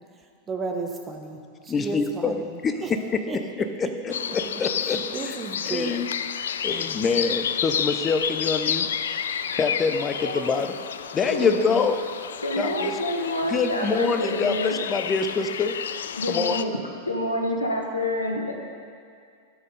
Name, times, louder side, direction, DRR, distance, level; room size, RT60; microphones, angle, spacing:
voice 1, 0.5-1.4 1.6-3.4 4.8-6.1, right 3 dB, 20° right, 3 dB, 1.1 m, -33 dB
voice 2, 1.7-2.8 3.8-5.0 5.7-6.1 6.6-8.9 9.5-10.7 11.1-12.0 12.6-12.9 13.5-15.7 16.3-16.6, left 5 dB, 20° left, 8 dB, 0.7 m, -25 dB
sound 1, 4.1-16.6, left 8 dB, 65° left, 0.3 m, -31 dB
voice 3, 11.3-11.8 12.4-14.7 16.2-16.7 17.1-18.5, left 1 dB, 80° left, 0 dB, 1.2 m, -27 dB
12.5 x 6.7 x 5.2 m, 2.2 s
figure-of-eight pair, 90°, 0 cm